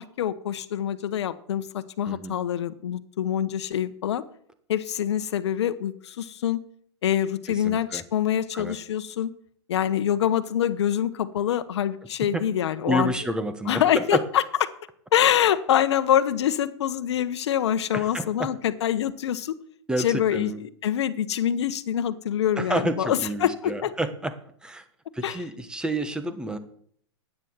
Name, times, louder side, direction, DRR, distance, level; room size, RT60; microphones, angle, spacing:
voice 1, 0.0-4.2 4.7-6.6 7.0-9.3 9.7-13.1 13.7-14.4 15.1-19.5 20.0-23.9 25.2-25.4, left 10 dB, 75° left, 12 dB, 1.0 m, -25 dB
voice 2, 2.1-2.4 7.5-8.0 8.5-8.8 12.3-12.4 12.9-14.2 17.9-18.3 19.9-20.6 22.6-24.3 24.6-24.8 25.1-26.6, right 1 dB, 5° right, 10 dB, 1.2 m, -29 dB
9.8 x 9.4 x 7.3 m, 0.64 s
hypercardioid pair, 120°, 14 cm